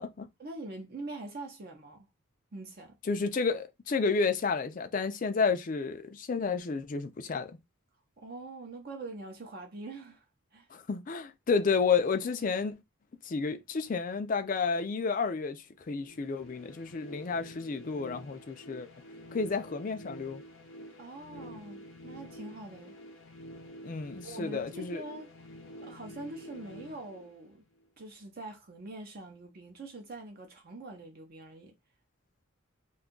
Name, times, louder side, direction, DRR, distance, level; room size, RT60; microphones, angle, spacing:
voice 1, 0.4-2.1 2.5-2.9 8.2-10.3 10.5-10.7 21.0-22.9 24.2-25.3 25.8-27.6 28.0-31.7, right 2 dB, 45° right, 0.6 m, -44 dB
voice 2, 3.1-7.6 10.7-12.7 13.2-18.9 19.3-20.4 23.8-25.0, left 5 dB, 40° left, 0.4 m, -31 dB
sound 1, 15.9-27.8, equal, 75° left, 0.7 m, -48 dB
2.6 x 2.3 x 3.7 m
head